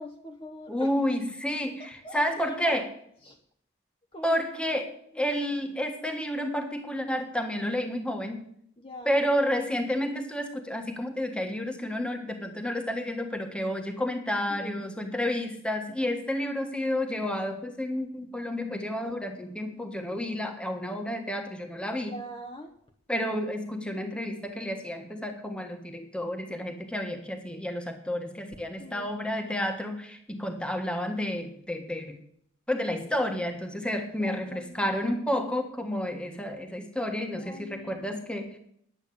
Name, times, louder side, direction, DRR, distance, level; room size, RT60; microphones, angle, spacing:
voice 1, 0.0-0.9 1.8-2.8 3.2-3.4 4.1-4.4 5.1-5.3 8.8-9.2 14.5-14.8 22.1-22.7 28.8-29.1 34.2-35.0 37.3-38.5, equal, 30° left, 2 dB, 1.0 m, -43 dB
voice 2, 0.7-2.9 4.2-8.4 9.0-22.2 23.1-32.2 32.7-38.6, left 1 dB, 5° left, 5 dB, 1.5 m, -30 dB
10.5 x 8.4 x 8.5 m, 0.68 s
head